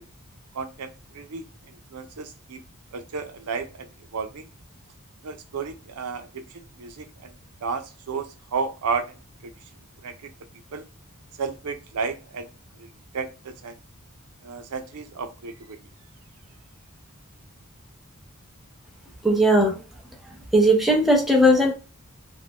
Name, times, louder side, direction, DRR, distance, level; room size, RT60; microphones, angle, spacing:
voice 1, 0.5-1.4 1.9-2.6 2.9-3.9 4.1-4.4 5.2-6.3 6.5-7.3 7.6-7.8 8.1-8.3 8.5-9.0 9.4-9.5 10.0-10.3 10.7-10.8 11.4-12.5 12.8-12.9 13.1-13.3 13.6-13.7 14.4-15.8, right 5 dB, 85° right, 7 dB, 0.5 m, -32 dB
voice 2, 19.2-19.8 20.5-21.7, equal, ahead, 0 dB, 0.6 m, -18 dB
2.5 x 2.1 x 3.4 m, 0.33 s
head